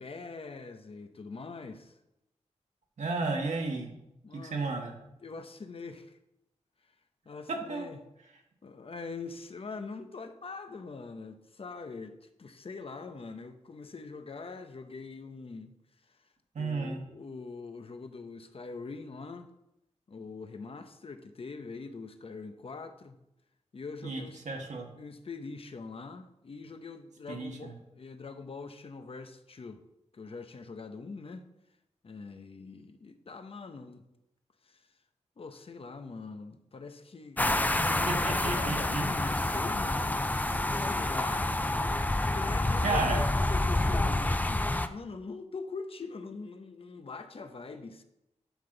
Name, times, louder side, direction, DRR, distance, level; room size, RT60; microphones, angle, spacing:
voice 1, 0.0-2.0 4.2-4.8 5.2-6.2 7.3-8.0 8.6-15.7 16.6-19.5 20.1-23.2 23.7-24.4 24.9-29.8 30.1-31.5 32.0-34.0 34.6-34.9 35.4-37.4 37.7-41.5 42.1-48.0, left 4 dB, 50° left, 0.8 m, -43 dB
voice 2, 3.0-3.9 4.3-4.9 7.7-7.9 16.5-17.0 24.0-24.9 27.3-27.7 38.1-39.0 42.3-42.4 42.8-43.2, right 3 dB, 75° right, 1.8 m, -33 dB
sound 1, 37.4-44.9, left 2 dB, 15° left, 0.5 m, -28 dB
11.5 x 5.9 x 3.9 m
wide cardioid pair, 85°, 12 cm